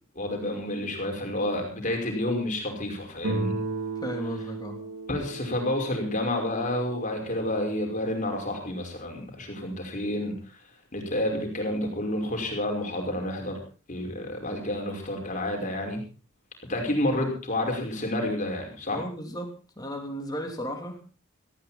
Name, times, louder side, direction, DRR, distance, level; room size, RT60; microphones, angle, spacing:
voice 1, 0.2-3.6 5.1-10.4 10.9-13.6 13.9-16.0 16.7-19.0, left 1 dB, 40° left, 2 dB, 5.3 m, -29 dB
Guitar, 3.2-8.0, right 3 dB, 85° right, 3.2 m, -35 dB
voice 2, 4.0-4.8 18.9-19.5 19.8-21.0, equal, 20° left, 3 dB, 3.3 m, -34 dB
18.5 x 15.5 x 4.2 m, 0.35 s
head